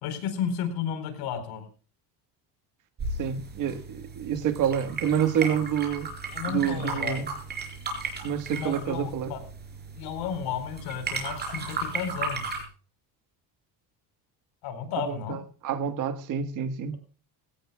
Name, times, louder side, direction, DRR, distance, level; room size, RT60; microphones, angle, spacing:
voice 1, 0.0-1.6 5.5-5.6 6.3-7.2 8.5-9.4 10.0-12.5 14.6-15.4, left 7 dB, 70° left, 4.2 m, -33 dB
sound 1, 3.0-12.6, right 3 dB, 25° right, 4.3 m, -35 dB
voice 2, 3.2-6.1 6.5-7.3 8.2-9.3 15.1-17.0, right 8 dB, 50° right, 1.5 m, -28 dB
21.0 x 17.0 x 2.3 m
cardioid pair, 165°, 40 cm